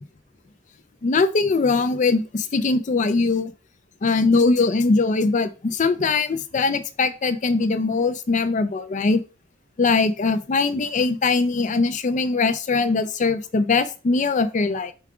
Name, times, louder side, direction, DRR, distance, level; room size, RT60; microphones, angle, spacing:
voice 1, 1.0-3.5 4.0-9.2 9.8-14.9, left 3 dB, 40° left, 11 dB, 0.4 m, -21 dB
4.7 x 2.3 x 4.8 m, 0.33 s
head